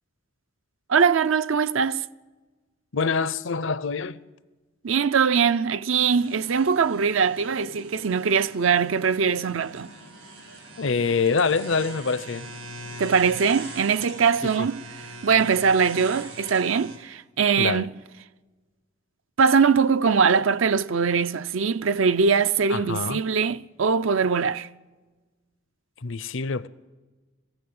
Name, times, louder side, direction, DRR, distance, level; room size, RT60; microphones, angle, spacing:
voice 1, 0.9-2.0 4.8-9.9 13.0-14.8 15.2-17.9 19.4-24.7, right 6 dB, 70° right, 0.6 m, -22 dB
voice 2, 2.9-4.2 10.8-12.5 14.4-14.7 17.6-17.9 22.7-23.2 26.0-26.7, left 4 dB, 65° left, 0.6 m, -25 dB
sound 1, 6.1-17.0, right 2 dB, 90° right, 7.4 m, -42 dB
22.5 x 16.0 x 7.8 m
head